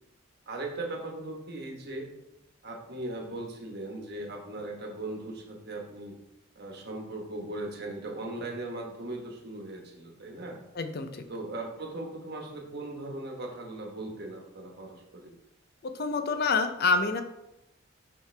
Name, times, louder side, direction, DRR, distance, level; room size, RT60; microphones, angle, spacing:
voice 1, 0.5-2.1 2.6-6.2 6.5-10.6 11.3-15.3, right 2 dB, 55° right, 1 dB, 1.2 m, -38 dB
voice 2, 10.8-11.2 15.9-17.2, left 4 dB, 50° left, 8 dB, 0.5 m, -27 dB
6.0 x 5.0 x 3.3 m, 0.88 s
head